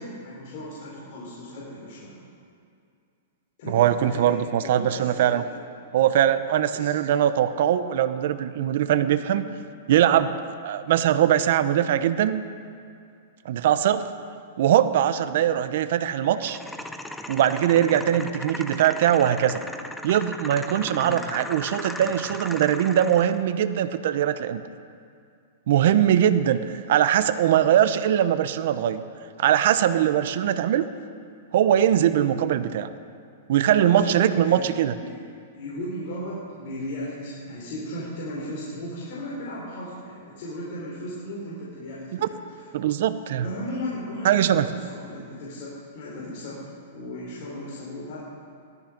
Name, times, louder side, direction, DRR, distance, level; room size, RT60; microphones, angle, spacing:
voice 1, 0.0-2.2 3.6-5.6 6.7-7.1 17.7-18.0 20.8-21.2 33.7-35.1 35.5-42.4 43.4-46.6 46.9-48.2, equal, 50° left, -6 dB, 4.7 m, -36 dB
voice 2, 3.7-5.4 5.9-9.5 9.9-10.4 10.6-12.4 13.4-14.1 14.6-16.6 17.3-19.6 20.0-24.6 25.7-29.0 29.4-30.9 31.5-32.9 33.5-34.9 42.7-43.5 44.2-44.7, right 10 dB, 60° right, 11 dB, 0.8 m, -21 dB
sound 1, 16.4-23.4, left 1 dB, 5° left, 0.7 m, -37 dB
17.5 x 13.5 x 5.3 m, 2.4 s
hypercardioid pair, 150°, 0 cm